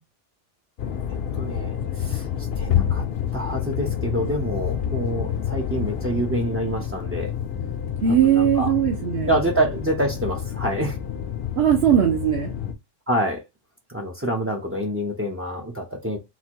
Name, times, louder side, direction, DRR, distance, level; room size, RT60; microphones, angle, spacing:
sound 1, 0.8-12.7, left 9 dB, 60° left, 0.8 m, -28 dB
voice 1, 1.3-3.0 3.3-7.3 8.2-8.7 9.3-11.0 13.1-13.4 13.9-16.2, right 1 dB, 20° right, 0.4 m, -26 dB
voice 2, 8.0-9.3 11.6-12.5, right 9 dB, 65° right, 1.0 m, -19 dB
4.1 x 2.2 x 4.4 m
omnidirectional pair, 1.2 m